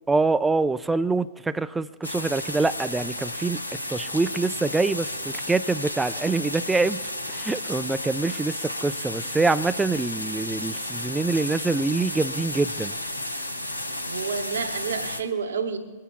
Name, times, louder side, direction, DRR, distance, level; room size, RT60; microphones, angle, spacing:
voice 1, 0.1-3.6 3.9-7.0 7.3-13.0, right 3 dB, 10° right, 14 dB, 0.4 m, -25 dB
sound 1, 2.0-15.2, left 1 dB, 90° left, 0.7 m, -33 dB
voice 2, 14.0-15.8, right 5 dB, 70° right, 6 dB, 1.1 m, -29 dB
24.0 x 9.0 x 2.2 m, 1.2 s
figure-of-eight pair, 100°, 0 cm